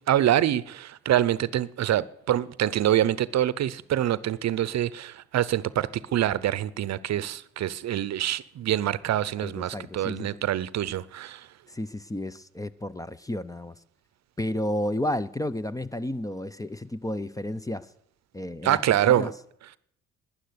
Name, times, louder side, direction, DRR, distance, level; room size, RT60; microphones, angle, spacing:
voice 1, 0.1-11.5 18.6-19.3, right 12 dB, 60° right, 0.7 m, -25 dB
voice 2, 9.4-10.4 11.7-13.7 14.4-17.9 18.3-19.3, left 1 dB, 10° left, 0.6 m, -32 dB
11.5 x 10.5 x 9.5 m
cardioid pair, 90°, 30 cm